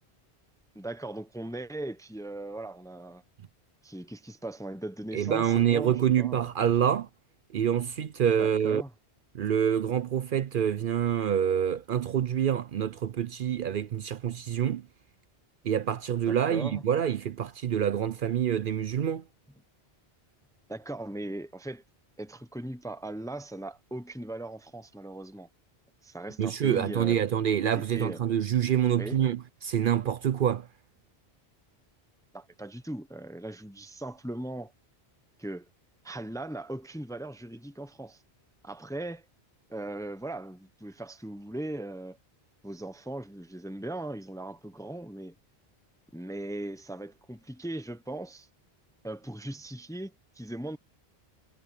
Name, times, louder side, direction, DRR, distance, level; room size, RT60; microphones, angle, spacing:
voice 1, 0.7-3.2 3.8-6.5 8.4-8.9 16.3-16.8 20.7-21.8 22.2-25.5 26.0-27.2 27.7-28.2 29.0-29.2 32.3-34.7 35.4-35.7 36.0-38.2 38.6-39.3 39.7-42.2 42.6-45.4 46.1-48.5 49.0-50.8, right 1 dB, 5° left, 0.6 m, -39 dB
voice 2, 5.1-7.1 7.5-8.8 9.3-14.9 15.6-19.2 26.4-30.7, right 9 dB, 60° right, 0.7 m, -26 dB
omnidirectional pair, 1.1 m